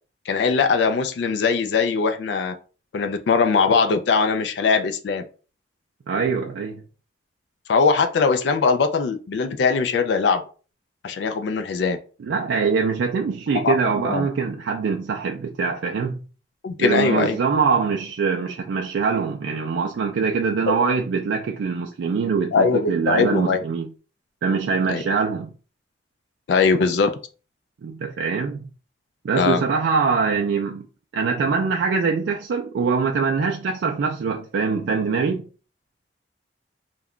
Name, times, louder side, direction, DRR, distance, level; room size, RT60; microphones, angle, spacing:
voice 1, 0.3-2.5 2.9-5.2 7.7-10.4 11.0-12.0 13.6-14.3 16.6-17.4 20.7-20.8 22.5-23.6 24.9-25.0 26.5-27.1 29.4-29.6, left 5 dB, 70° left, 0.3 m, -21 dB
voice 2, 6.1-6.8 12.3-16.2 16.8-23.9 24.4-25.5 27.8-28.7 29.2-30.8 31.1-35.4, right 5 dB, 80° right, 0.3 m, -23 dB
2.3 x 2.2 x 3.5 m
head